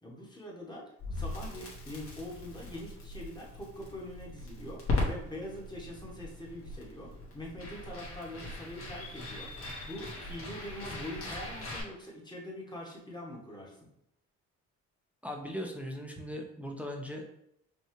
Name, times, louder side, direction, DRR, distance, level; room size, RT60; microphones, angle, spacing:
voice 1, 0.0-9.5 9.9-13.8, left 1 dB, 15° left, -3 dB, 1.3 m, -43 dB
Crackle, 1.0-11.8, left 2 dB, 45° left, 1.5 m, -39 dB
voice 2, 15.2-17.2, equal, 5° right, 1 dB, 0.6 m, -39 dB
5.4 x 2.3 x 3.1 m, 0.77 s
cardioid pair, 90°, 30 cm